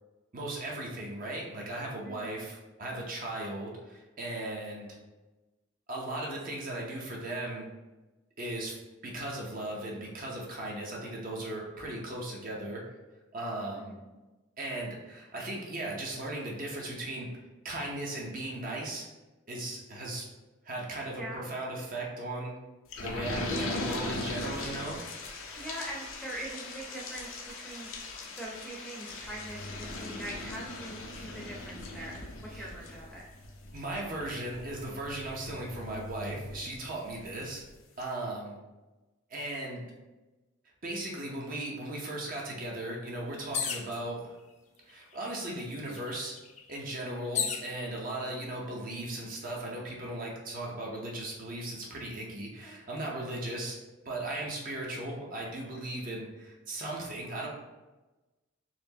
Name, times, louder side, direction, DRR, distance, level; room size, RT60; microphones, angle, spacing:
voice 1, 0.3-4.9 5.9-7.7 8.4-8.8 9.0-12.8 13.3-13.9 14.6-17.3 17.6-19.1 19.5-20.3 20.6-22.5 23.0-25.0 32.5-32.7 33.7-37.6 38.0-38.6 39.3-39.8 40.8-44.3 44.9-46.4 46.7-53.8 54.0-57.5, right 1 dB, 40° right, -2 dB, 0.8 m, -37 dB
voice 2, 2.0-2.4 13.8-14.1 21.1-21.5 25.5-27.9 28.4-33.2 47.1-47.6 52.6-52.8, right 1 dB, 5° left, -4 dB, 0.7 m, -43 dB
sound 1, 22.9-37.2 37.6-37.7 38.0-38.1, left 2 dB, 80° left, 0.7 m, -40 dB
sound 2, 43.5-44.0 44.9-45.0 45.3-47.7 48.5-49.0, left 7 dB, 35° left, 0.4 m, -34 dB
4.2 x 3.1 x 2.8 m, 1.1 s
head